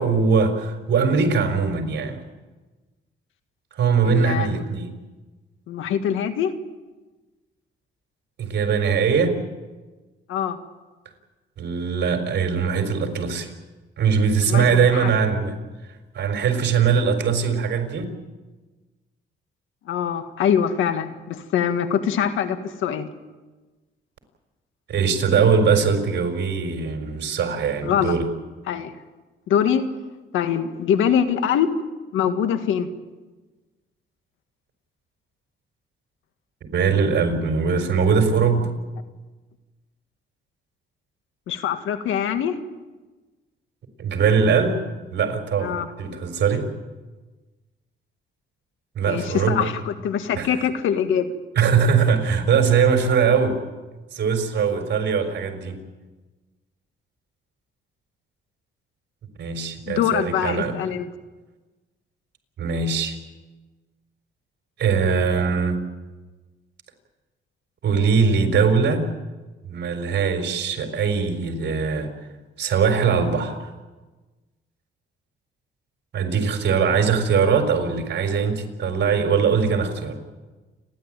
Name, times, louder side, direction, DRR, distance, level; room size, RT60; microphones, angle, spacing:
voice 1, 0.0-2.2 3.7-4.9 8.4-9.4 11.6-13.5 14.0-15.6 16.1-18.0 24.9-28.3 36.7-38.7 44.0-44.8 45.1-46.7 48.9-49.7 50.3-50.5 51.6-53.6 54.1-55.8 59.4-60.8 62.6-63.2 64.8-65.8 67.8-69.1 69.6-72.1 72.6-73.6 76.1-80.2, right 6 dB, 60° right, 5 dB, 4.6 m, -21 dB
voice 2, 4.0-4.6 5.7-6.5 10.3-10.6 14.5-15.1 19.9-23.1 27.8-28.2 28.7-28.9 29.5-29.8 30.3-31.7 32.1-32.9 41.5-42.6 45.6-45.9 49.1-51.3 59.9-61.1, left 8 dB, 80° left, 9 dB, 1.8 m, -23 dB
29.5 x 11.5 x 9.0 m, 1.2 s
cardioid pair, 90°, 20 cm